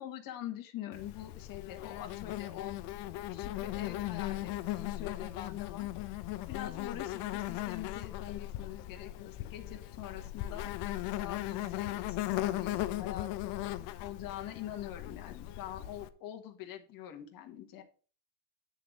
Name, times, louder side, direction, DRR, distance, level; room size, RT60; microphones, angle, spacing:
voice 1, 0.0-2.8 3.3-5.9 6.5-10.7 11.2-13.7 14.0-17.8, left 12 dB, 45° left, 4 dB, 1.5 m, -44 dB
Insect, 0.9-16.1, left 15 dB, 60° left, 0.8 m, -38 dB
9.1 x 3.9 x 5.9 m, 0.39 s
supercardioid pair, 120°, 47 cm